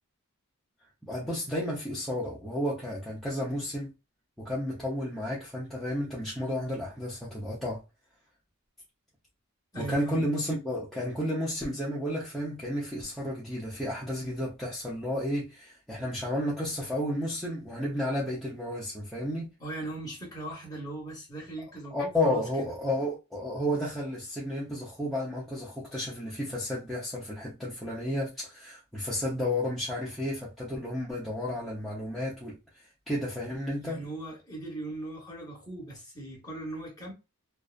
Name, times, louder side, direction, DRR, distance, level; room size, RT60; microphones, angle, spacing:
voice 1, 1.1-3.9 4.4-7.8 9.8-19.5 21.9-34.0, left 1 dB, ahead, 0.6 m, -32 dB
voice 2, 9.7-10.2 19.6-22.7 33.8-37.1, right 2 dB, 15° left, 1.0 m, -39 dB
2.7 x 2.2 x 2.3 m
head